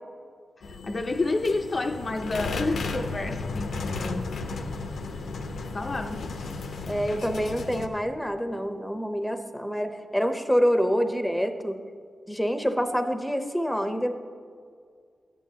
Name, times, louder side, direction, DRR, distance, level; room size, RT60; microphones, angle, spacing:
sound 1, 0.6-7.9, left 3 dB, 85° left, 0.6 m, -34 dB
voice 1, 0.7-4.4 5.7-6.3, left 2 dB, 40° left, 4 dB, 0.4 m, -29 dB
voice 2, 6.9-11.8 12.3-14.2, equal, 5° left, 7 dB, 0.6 m, -26 dB
12.5 x 9.1 x 2.8 m, 2.1 s
cardioid pair, 80°, 0 cm